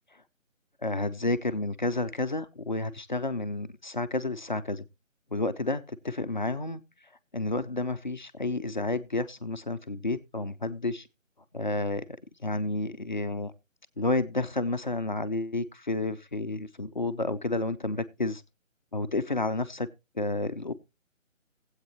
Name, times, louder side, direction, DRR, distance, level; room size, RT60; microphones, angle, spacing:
voice 1, 0.8-4.8 5.3-6.8 7.3-11.1 11.5-12.1 12.4-13.5 14.0-18.4 18.9-19.9 20.2-20.7, left 2 dB, 35° left, 0.5 m, -30 dB
19.0 x 8.1 x 2.9 m
figure-of-eight pair, 160°, 39 cm